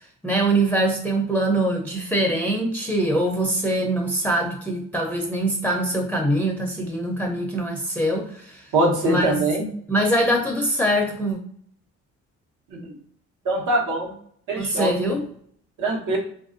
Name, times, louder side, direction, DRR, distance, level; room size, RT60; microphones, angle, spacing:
voice 1, 0.2-8.7 9.0-9.4 9.9-11.4 14.6-15.3, right 1 dB, 5° left, 1 dB, 0.5 m, -23 dB
voice 2, 8.7-9.7 12.7-13.0 13.4-14.1 14.5-14.9 15.8-16.2, right 2 dB, 80° right, -1 dB, 1.1 m, -22 dB
3.3 x 2.5 x 2.5 m, 0.63 s
cardioid pair, 90°, 30 cm